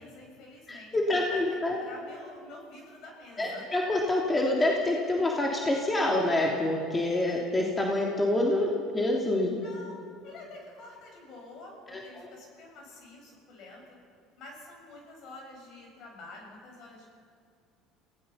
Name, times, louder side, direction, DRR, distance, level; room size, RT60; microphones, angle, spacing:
voice 1, 0.0-1.0 1.2-1.4 1.7-3.7 9.6-10.0 10.2-13.8 14.4-17.1, left 2 dB, 60° left, 0 dB, 7.3 m, -48 dB
voice 2, 0.7-1.8 3.4-9.6 11.9-12.3, left 1 dB, 20° left, -1 dB, 3.1 m, -27 dB
27.5 x 17.5 x 5.8 m, 2.3 s
supercardioid pair, 85°, 0 cm